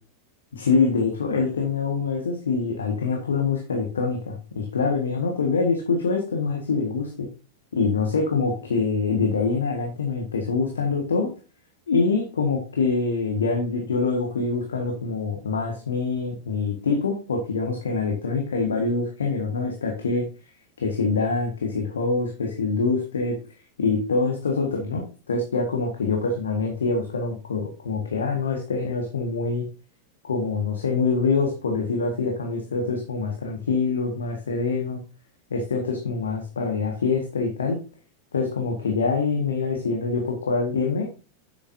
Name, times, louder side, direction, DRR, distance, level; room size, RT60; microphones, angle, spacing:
voice 1, 0.5-7.3 7.7-11.3 11.9-20.2 20.8-23.3 23.8-29.6 30.2-35.0 35.5-37.8 38.3-41.1, left 4 dB, 70° left, 1 dB, 1.7 m, -25 dB
9.8 x 8.2 x 2.8 m, 0.33 s
figure-of-eight pair, 90°, 0 cm